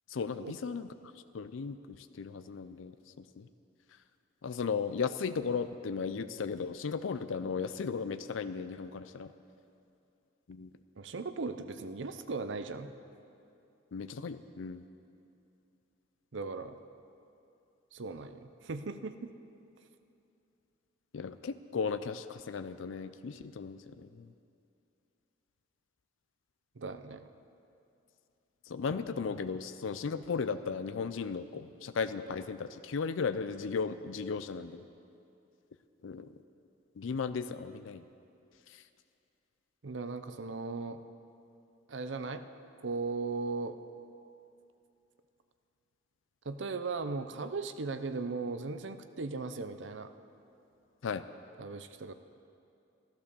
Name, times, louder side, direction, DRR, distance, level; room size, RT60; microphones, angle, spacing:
voice 1, 0.1-0.9 1.3-2.9 3.4-3.5 4.4-9.3 10.5-10.7 13.9-14.8 21.1-24.3 28.7-34.8 36.0-36.3 37.0-38.0 51.0-51.2, left 5 dB, 85° left, 11 dB, 0.5 m, -36 dB
voice 2, 11.0-12.9 16.3-16.8 17.9-19.3 26.8-27.3 39.8-41.0 41.9-42.4 42.8-43.8 46.4-50.1 51.6-52.1, right 3 dB, 70° right, 10 dB, 0.6 m, -37 dB
13.5 x 11.5 x 6.8 m, 2.6 s
head